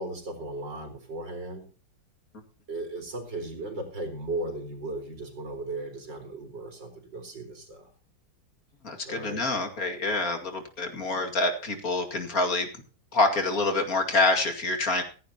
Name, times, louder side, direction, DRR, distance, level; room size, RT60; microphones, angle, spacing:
voice 1, 0.0-1.6 2.7-7.9 9.0-9.4, right 2 dB, 60° right, 4 dB, 4.9 m, -36 dB
voice 2, 8.8-12.7 13.1-15.0, left 2 dB, 45° left, 4 dB, 2.6 m, -26 dB
16.5 x 15.5 x 2.9 m, 0.39 s
omnidirectional pair, 2.2 m